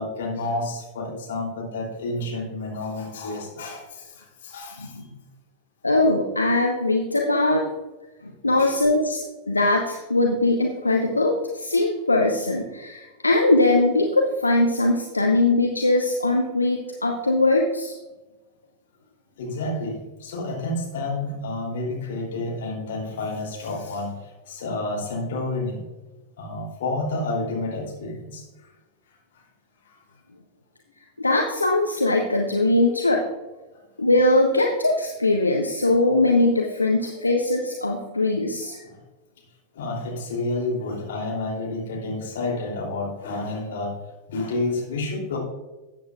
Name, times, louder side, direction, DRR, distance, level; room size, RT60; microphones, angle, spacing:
voice 1, 0.0-4.0 4.4-4.9 8.6-8.8 19.4-24.1 24.5-25.8 26.4-28.4 37.0-37.1 39.7-43.9 44.3-45.4, left 2 dB, 60° left, -2 dB, 3.1 m, -29 dB
voice 2, 5.8-7.7 8.4-9.2 9.5-17.9 31.2-33.2 34.0-38.8, left 2 dB, 80° left, 2 dB, 0.8 m, -21 dB
13.5 x 8.7 x 2.4 m, 1.2 s
figure-of-eight pair, 90°, 0 cm